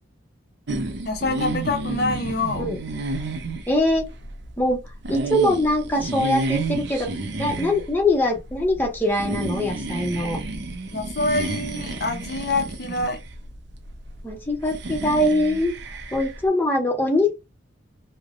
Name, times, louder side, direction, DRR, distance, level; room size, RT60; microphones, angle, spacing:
sound 1, 0.7-16.5, right 2 dB, 60° right, 0.5 m, -31 dB
voice 1, 1.1-2.7 10.9-13.2, left 2 dB, 50° left, 0.6 m, -26 dB
voice 2, 3.7-4.1 4.6-4.8 5.1-7.1 7.4-10.4 14.2-15.8 16.1-17.4, left 1 dB, 10° left, 0.6 m, -22 dB
3.1 x 2.0 x 2.4 m
head